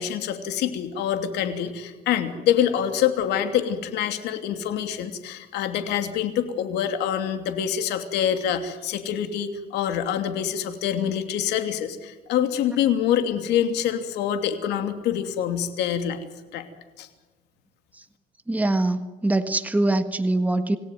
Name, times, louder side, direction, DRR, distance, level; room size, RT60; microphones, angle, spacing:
voice 1, 0.0-16.2 16.5-16.7 17.0-17.1, left 9 dB, 85° left, 7 dB, 2.9 m, -25 dB
voice 2, 18.5-20.8, right 2 dB, 10° right, 9 dB, 1.5 m, -23 dB
27.5 x 17.5 x 9.3 m, 1.3 s
cardioid pair, 110°, 17 cm